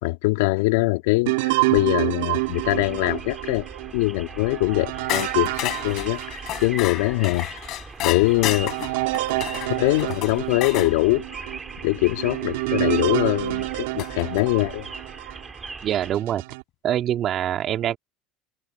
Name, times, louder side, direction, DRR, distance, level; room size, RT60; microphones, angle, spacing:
voice 1, 0.0-3.7 3.9-7.5 8.0-8.8 9.7-11.2 11.8-14.9, left 22 dB, 80° left, 3.7 m, -23 dB
sound 1, 1.3-7.0 7.5-7.6 8.2-15.4 16.0-16.6, right 22 dB, 80° right, 3.7 m, -28 dB
sound 2, 1.8-16.1, right 4 dB, 20° right, 5.2 m, -40 dB
sound 3, 5.1-10.9 12.9-13.0 14.0-14.4, left 15 dB, 55° left, 5.2 m, -31 dB
voice 2, 15.8-16.4 16.8-18.0, right 11 dB, 50° right, 2.7 m, -24 dB
supercardioid pair, 95°, 0 cm